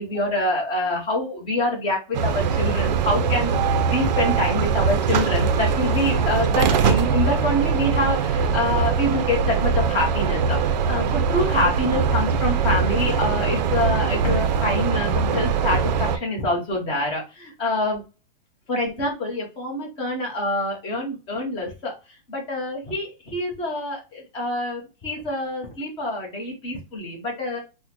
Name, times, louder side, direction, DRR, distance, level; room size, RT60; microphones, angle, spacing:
voice 1, 0.0-18.0 18.7-21.9 22.3-27.6, left 1 dB, 20° left, 0 dB, 0.8 m, -26 dB
sound 1, 2.1-16.2, right 6 dB, 50° right, 0.4 m, -22 dB
3.6 x 2.1 x 2.9 m, 0.29 s
hypercardioid pair, 160°, 29 cm